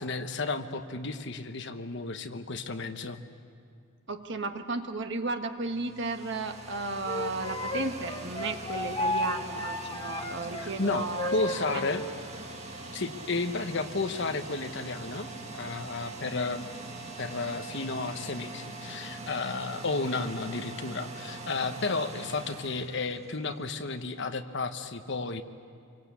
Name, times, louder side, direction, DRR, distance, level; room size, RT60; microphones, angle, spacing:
voice 1, 0.0-3.2 10.6-12.1 12.9-16.7 17.2-25.4, left 3 dB, 55° left, 8 dB, 1.2 m, -32 dB
voice 2, 4.1-11.3 11.7-11.9, right 3 dB, 55° right, 6 dB, 1.5 m, -34 dB
sound 1, 5.6-23.7, right 2 dB, 30° right, 2.0 m, -43 dB
Wind instrument woodwind instrument, 7.0-12.1, left 1 dB, 20° left, 1.5 m, -33 dB
26.0 x 24.5 x 8.5 m, 2.3 s
head